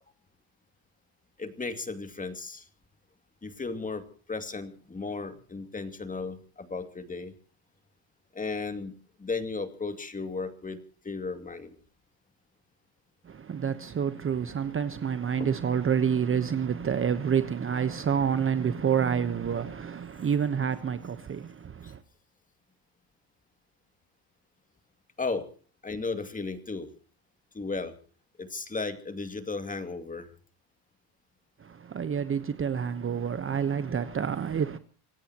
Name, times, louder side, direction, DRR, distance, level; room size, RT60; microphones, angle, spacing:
voice 1, 1.4-2.7 3.4-7.3 8.3-10.8 11.0-11.8 21.8-21.9 25.2-25.5 25.8-26.9 27.5-27.9 28.4-30.3, left 4 dB, 15° left, 2.5 m, -35 dB
voice 2, 13.2-22.0 31.6-34.8, right 7 dB, 25° right, 1.1 m, -28 dB
26.5 x 17.5 x 3.0 m
supercardioid pair, 115°, 49 cm